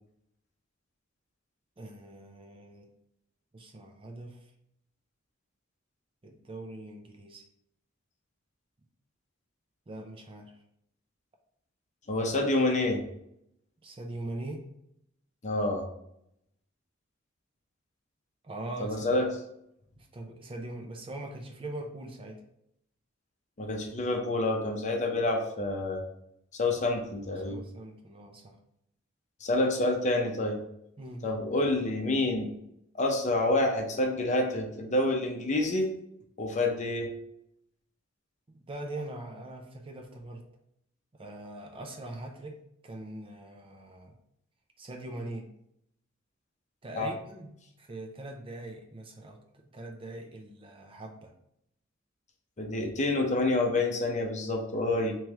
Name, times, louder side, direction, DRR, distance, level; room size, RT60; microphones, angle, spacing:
voice 1, 1.8-2.9 3.5-4.4 6.2-7.4 9.9-10.5 13.8-14.6 18.4-19.1 20.0-22.4 27.4-28.6 31.0-31.3 38.5-40.4 41.1-42.6 42.8-44.1 44.8-45.5 46.8-51.3, right 1 dB, 25° right, 2 dB, 0.5 m, -42 dB
voice 2, 12.1-13.0 15.4-15.9 18.8-19.3 23.6-26.0 26.5-27.6 29.4-30.6 31.2-32.5 32.9-35.9 36.4-37.1 46.9-47.1 52.6-55.2, left 2 dB, 35° left, 2 dB, 0.6 m, -28 dB
3.1 x 3.1 x 3.5 m, 0.76 s
head